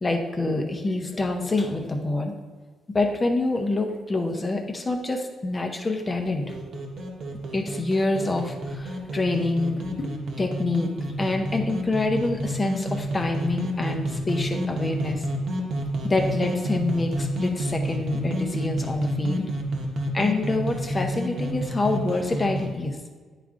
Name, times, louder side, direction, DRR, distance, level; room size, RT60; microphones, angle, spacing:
voice 1, 0.0-2.3 2.9-6.5 7.5-10.9 11.2-15.2 16.0-19.4 20.1-23.0, left 2 dB, 20° left, 3 dB, 0.7 m, -26 dB
sound 1, 6.5-22.7, right 1 dB, 60° right, 1.1 m, -29 dB
10.0 x 3.6 x 3.7 m, 1.5 s
cardioid pair, 115°, 0 cm